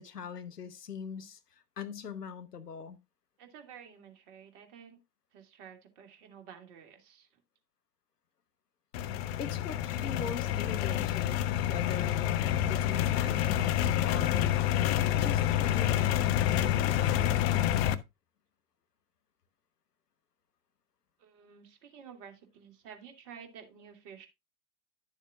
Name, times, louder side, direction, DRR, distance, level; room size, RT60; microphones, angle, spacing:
voice 1, 0.0-1.4 1.8-3.0 9.4-12.4 12.7-17.5, left 6 dB, 75° left, 1.1 m, -42 dB
voice 2, 3.4-5.0 5.3-7.4 21.2-24.3, right 7 dB, 45° right, 2.5 m, -51 dB
sound 1, 8.9-17.9, left 11 dB, 40° left, 0.8 m, -28 dB
11.5 x 7.2 x 2.5 m
figure-of-eight pair, 90°, 47 cm